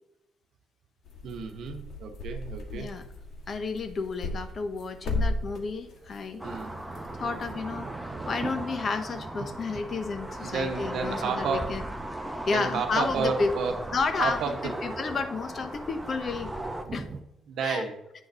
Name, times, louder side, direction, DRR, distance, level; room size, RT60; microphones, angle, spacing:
sound 1, 1.1-7.5, left 2 dB, 70° left, 1.5 m, -36 dB
voice 1, 1.2-2.9 6.4-6.7 10.4-11.7 12.5-13.7 14.2-14.6 17.5-18.0, right 5 dB, 75° right, 4 dB, 0.9 m, -31 dB
Thunder / Rain, 2.5-2.6 5.5-17.2, right 4 dB, 40° right, 0.9 m, -45 dB
voice 2, 2.7-3.0 3.5-6.4 7.1-11.8 12.5-13.5 13.9-16.5 16.9-17.1 17.6-17.8, left 4 dB, 45° left, 10 dB, 0.9 m, -31 dB
sound 2, 6.4-16.8, right 1 dB, 5° right, 0.9 m, -37 dB
9.1 x 4.0 x 6.0 m, 0.86 s
cardioid pair, 90°, 0 cm